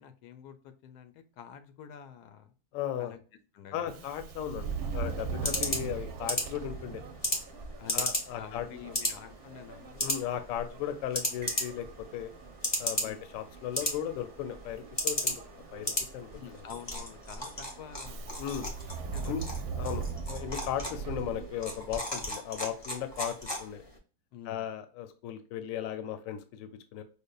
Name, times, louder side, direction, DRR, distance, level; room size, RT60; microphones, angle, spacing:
voice 1, 0.0-2.5 3.0-3.2 3.5-4.1 5.4-5.5 7.8-10.1 13.0-13.3 16.4-18.4 19.1-19.6 24.3-24.7, left 9 dB, 85° left, 9 dB, 1.1 m, -48 dB
voice 2, 2.7-3.1 3.7-7.0 7.9-8.9 10.0-11.9 12.1-12.3 12.8-16.6 18.4-18.7 19.2-19.4 19.8-23.8 24.5-27.0, left 10 dB, 70° left, 9 dB, 0.9 m, -36 dB
Subway metro underground, 3.8-22.2, right 5 dB, 75° right, 1.0 m, -41 dB
sound 1, 4.6-24.0, left 1 dB, 25° left, 0.5 m, -36 dB
sound 2, 11.4-12.2 12.5-12.8 13.8-14.5, right 6 dB, 55° right, 0.5 m, -53 dB
5.1 x 2.1 x 2.3 m, 0.38 s
omnidirectional pair, 1.7 m